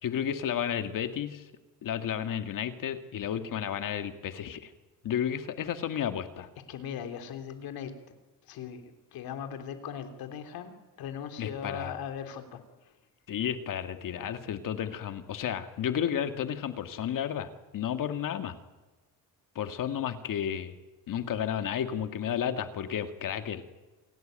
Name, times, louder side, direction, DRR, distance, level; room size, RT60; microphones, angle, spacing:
voice 1, 0.0-1.5 1.8-4.7 5.0-6.5 11.4-11.9 13.3-18.6 19.6-20.7 21.1-23.6, left 9 dB, 65° left, 8 dB, 2.2 m, -32 dB
voice 2, 6.7-7.9 8.5-10.7 11.0-12.6, left 8 dB, 85° left, 7 dB, 3.4 m, -39 dB
28.0 x 18.0 x 9.1 m, 1.2 s
cardioid pair, 110°, 35 cm